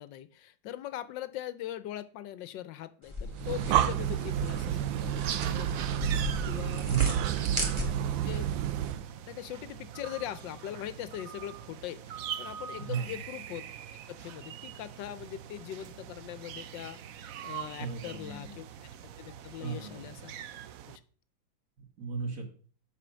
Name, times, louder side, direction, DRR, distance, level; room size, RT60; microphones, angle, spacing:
voice 1, 0.0-5.9 6.4-6.9 7.3-7.5 8.2-8.5 9.3-13.7 14.1-18.7 19.0-20.3 20.9-21.0, left 12 dB, 75° left, 14 dB, 1.3 m, -41 dB
sound 1, 3.0-8.3, left 1 dB, 15° right, 2.0 m, -38 dB
Breathing, 3.3-9.1, right 10 dB, 90° right, 1.4 m, -30 dB
sound 2, 3.7-21.0, right 9 dB, 65° right, 0.9 m, -43 dB
voice 2, 6.8-7.4 12.9-13.1 17.8-18.5 19.6-20.2 22.0-22.5, right 5 dB, 45° right, 2 dB, 2.5 m, -36 dB
7.7 x 5.7 x 6.2 m, 0.42 s
omnidirectional pair, 2.0 m